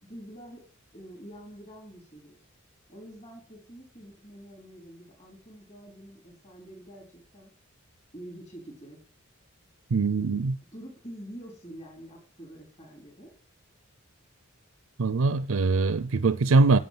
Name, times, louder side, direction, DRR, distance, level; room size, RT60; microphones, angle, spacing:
voice 1, 0.0-0.6 0.9-2.4 2.9-7.5 8.1-9.0 10.2-10.4 10.7-13.3, right 1 dB, 30° left, 4.2 m, -46 dB
voice 2, 9.9-10.6 15.0-16.8, right 3 dB, 80° right, 0.5 m, -22 dB
11.0 x 7.6 x 7.7 m
head